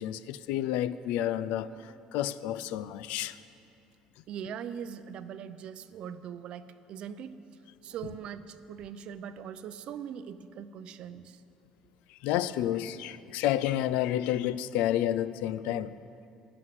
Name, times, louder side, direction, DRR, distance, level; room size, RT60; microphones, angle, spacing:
voice 1, 0.0-3.4 12.1-15.9, left 12 dB, 85° left, 0.4 m, -30 dB
voice 2, 4.3-7.3 7.8-11.4, right 8 dB, 50° right, 0.5 m, -41 dB
15.5 x 6.2 x 9.6 m
cardioid pair, 155°, 2 cm